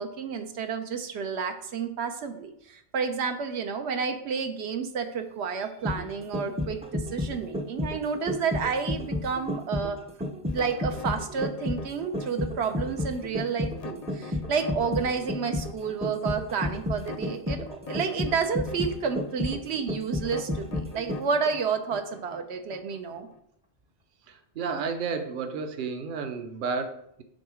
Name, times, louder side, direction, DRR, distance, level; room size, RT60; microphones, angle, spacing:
voice 1, 0.0-10.0 10.5-23.3, right 6 dB, 85° right, 6 dB, 1.0 m, -30 dB
sound 1, 5.6-21.5 21.8-21.9, left 1 dB, 10° right, 0.3 m, -32 dB
sound 2, 10.5-23.4, left 5 dB, 50° left, 0.5 m, -44 dB
voice 2, 24.6-27.2, right 5 dB, 55° right, 7 dB, 0.8 m, -31 dB
6.3 x 3.8 x 5.0 m, 0.72 s
omnidirectional pair, 1.1 m